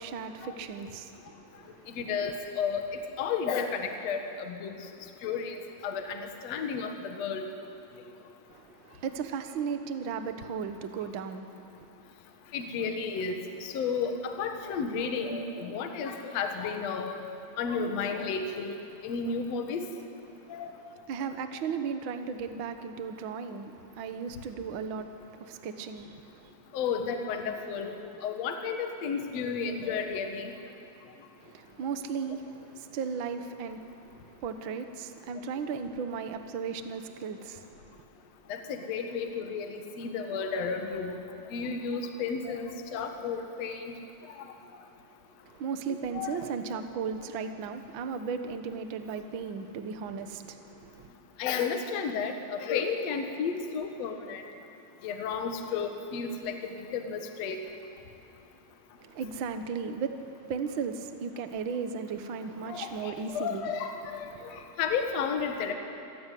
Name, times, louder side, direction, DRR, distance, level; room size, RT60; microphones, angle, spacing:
voice 1, 0.0-2.1 8.5-11.9 20.3-20.6 21.1-26.5 31.4-38.0 45.4-51.1 59.0-63.7 64.3-64.7, right 6 dB, 85° right, 8 dB, 1.1 m, -36 dB
voice 2, 2.0-2.8 3.2-4.7 5.2-7.5 12.5-17.2 17.6-18.8 19.0-19.9 20.5-20.7 26.7-30.5 38.5-41.2 41.5-43.9 46.1-46.5 51.4-54.4 55.0-56.5 56.9-57.6 62.7-65.7, left 5 dB, 55° left, 5 dB, 2.4 m, -32 dB
26.5 x 15.0 x 9.3 m, 2.7 s
omnidirectional pair, 4.0 m